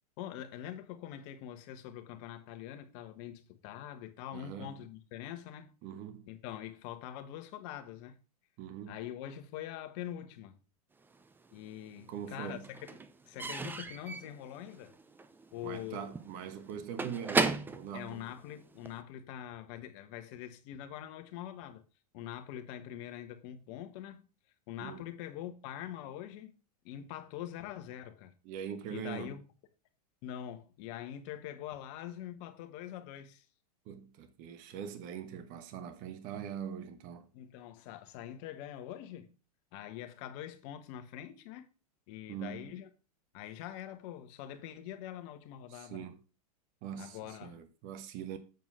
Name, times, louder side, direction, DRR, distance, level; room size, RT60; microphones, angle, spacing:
voice 1, 0.2-5.7 6.3-8.2 8.9-10.6 11.5-12.9 13.2-15.0 15.5-16.1 17.9-21.8 22.1-24.3 24.7-26.5 26.8-28.3 28.9-29.4 30.2-33.5 37.3-39.3 39.7-41.7 42.1-42.9 43.3-46.1 46.9-47.6, left 11 dB, 50° left, 1.4 m, -44 dB
voice 2, 4.3-4.8 5.8-6.3 8.6-9.0 12.1-12.7 15.6-18.2 24.8-25.0 28.4-29.3 33.9-37.3 42.3-42.7 45.7-46.2 46.8-48.4, right 8 dB, 45° right, 1.1 m, -42 dB
Slam / Squeak / Wood, 11.1-12.0 12.2-19.0, right 3 dB, 10° right, 0.6 m, -36 dB
7.9 x 4.6 x 5.5 m
hypercardioid pair, 115°, 20 cm